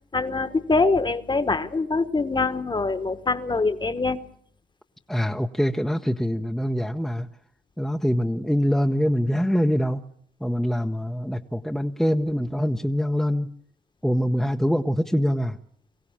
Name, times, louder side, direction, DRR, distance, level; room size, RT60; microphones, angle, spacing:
voice 1, 0.1-4.2, left 3 dB, 25° left, 1.2 m, -24 dB
voice 2, 5.1-7.3 7.8-10.0 10.4-13.5 14.0-15.6, equal, ahead, 0.8 m, -24 dB
23.5 x 15.5 x 7.3 m
cardioid pair, 90°, 20 cm